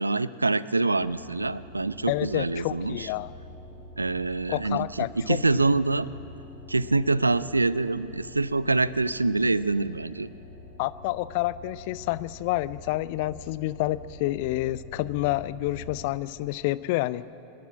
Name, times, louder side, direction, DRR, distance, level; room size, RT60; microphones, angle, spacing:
voice 1, 0.0-3.1 4.0-6.1 6.7-10.3, right 3 dB, 80° right, 18 dB, 0.5 m, -25 dB
sound 1, 1.0-16.2, left 2 dB, 75° left, 3.0 m, -46 dB
voice 2, 2.1-3.3 4.5-5.6 10.8-17.2, left 17 dB, 50° left, 17 dB, 0.4 m, -29 dB
24.5 x 11.5 x 9.6 m, 2.8 s
figure-of-eight pair, 90°, 0 cm